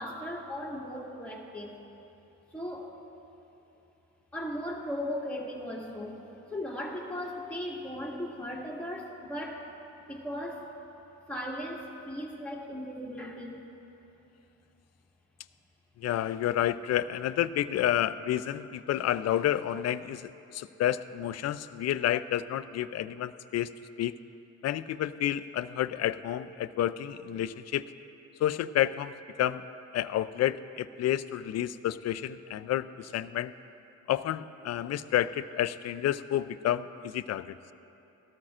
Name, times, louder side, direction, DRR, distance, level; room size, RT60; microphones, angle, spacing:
voice 1, 0.0-1.7 2.5-2.9 4.3-6.2 6.5-9.7 10.1-10.7 11.3-13.6, equal, 5° left, -4 dB, 2.2 m, -37 dB
voice 2, 16.0-23.7 24.0-24.1 24.6-27.9 28.4-29.1 29.4-29.6 29.9-33.5 34.1-37.6, left 12 dB, 55° left, 13 dB, 0.4 m, -30 dB
18.5 x 13.0 x 2.5 m, 2.9 s
cardioid pair, 90°, 30 cm